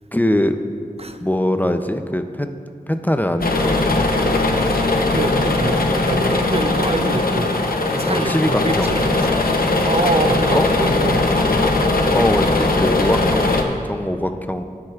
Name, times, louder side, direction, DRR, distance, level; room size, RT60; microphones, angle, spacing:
voice 1, 0.1-0.6 1.2-2.6 2.9-4.1 8.1-8.9 10.5-10.7 12.1-14.6, left 1 dB, 10° left, 8 dB, 0.5 m, -22 dB
sound 1, 3.4-13.6, left 2 dB, 75° left, 0.8 m, -19 dB
voice 2, 4.5-7.5 7.9-9.4 9.8-11.5, right 3 dB, 40° right, 8 dB, 0.5 m, -26 dB
13.0 x 9.6 x 2.4 m, 2.2 s
wide cardioid pair, 40°, 15 cm